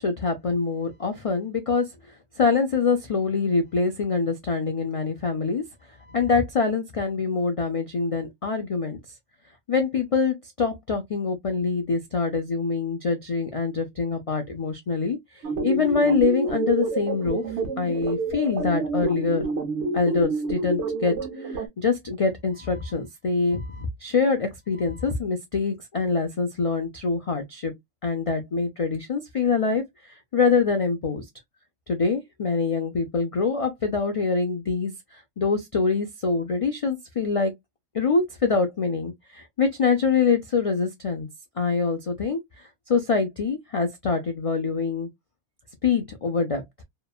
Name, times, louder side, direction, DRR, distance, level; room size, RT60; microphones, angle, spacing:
voice 1, 0.0-1.9 2.4-5.6 6.1-9.0 9.7-17.4 17.8-19.4 19.9-27.7 28.0-31.2 31.9-34.9 35.4-37.5 37.9-41.3 41.6-42.4 42.9-45.1 45.8-46.6, left 4 dB, 65° left, 0.3 m, -25 dB
sound 1, 15.4-21.7, right 3 dB, 65° right, 1.0 m, -28 dB
2.8 x 2.2 x 2.3 m
omnidirectional pair, 1.3 m